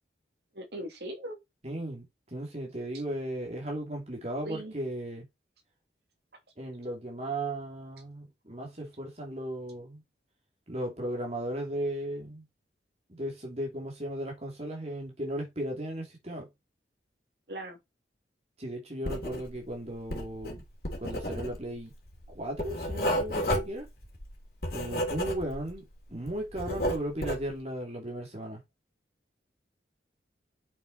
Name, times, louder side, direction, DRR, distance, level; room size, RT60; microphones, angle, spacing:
voice 1, 0.5-1.4 4.4-4.7 17.5-17.8, right 1 dB, 60° right, 2.9 m, -39 dB
voice 2, 1.6-5.3 6.6-10.0 10.7-12.4 13.1-16.5 18.6-20.6 21.0-21.9 22.3-23.9 24.7-25.8 26.1-28.6, right 1 dB, 35° right, 2.9 m, -36 dB
Writing, 19.0-19.7 20.0-25.8 26.1-27.5, equal, 55° left, 3.2 m, -32 dB
7.1 x 6.5 x 4.2 m
head